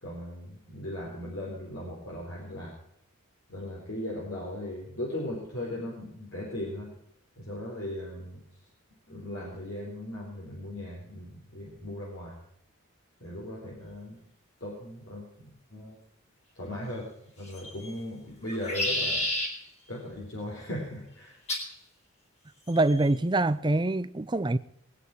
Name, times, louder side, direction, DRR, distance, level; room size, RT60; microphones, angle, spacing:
voice 1, 0.0-2.7 3.5-6.9 7.4-8.4 9.1-12.4 13.2-14.2 14.6-16.0 16.6-17.1 17.4-19.2 19.9-21.4, left 1 dB, 60° left, 4.2 m, -38 dB
sound 1, 17.4-17.9 18.4-19.5 21.5-21.7 22.7-23.1, left 1 dB, 30° left, 3.8 m, -30 dB
voice 2, 22.7-24.6, right 2 dB, 20° right, 0.5 m, -25 dB
21.0 x 9.8 x 4.6 m
head